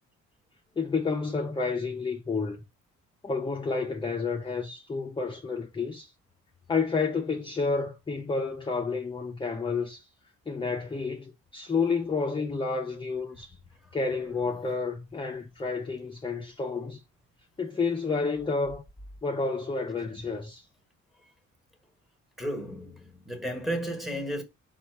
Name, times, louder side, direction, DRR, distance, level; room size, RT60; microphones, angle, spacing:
voice 1, 0.8-2.6 3.2-6.1 6.7-10.1 10.5-13.5 13.9-17.0 17.6-18.8 19.2-20.6, left 4 dB, 15° left, 0.6 m, -30 dB
voice 2, 22.4-24.4, equal, ahead, 1.3 m, -33 dB
4.1 x 2.4 x 4.5 m
cardioid pair, 90°, 30 cm